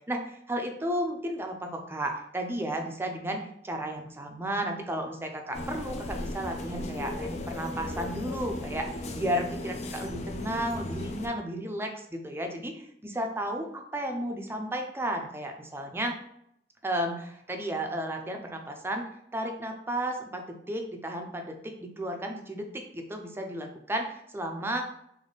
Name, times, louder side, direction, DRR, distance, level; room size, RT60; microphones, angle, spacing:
voice 1, 0.1-12.7 13.0-16.2 16.8-19.0 19.3-24.9, right 1 dB, 15° right, 3 dB, 0.5 m, -33 dB
sound 1, 5.5-11.3, left 2 dB, 40° left, 0.4 m, -36 dB
3.5 x 3.1 x 3.9 m, 0.73 s
head